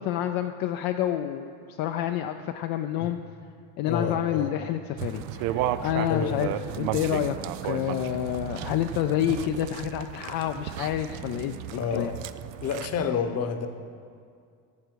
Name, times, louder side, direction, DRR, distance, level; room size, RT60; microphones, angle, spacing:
voice 1, 0.0-3.2 3.8-6.5 6.8-7.4 7.6-12.2, left 11 dB, 65° left, 7 dB, 0.6 m, -28 dB
voice 2, 3.8-4.5 6.1-6.4 11.8-12.1 12.6-13.7, left 6 dB, 40° left, 8 dB, 1.0 m, -29 dB
sound 1, 5.0-13.1, right 12 dB, 90° right, 0.5 m, -34 dB
14.0 x 6.7 x 4.6 m, 2.3 s
supercardioid pair, 105°, 40 cm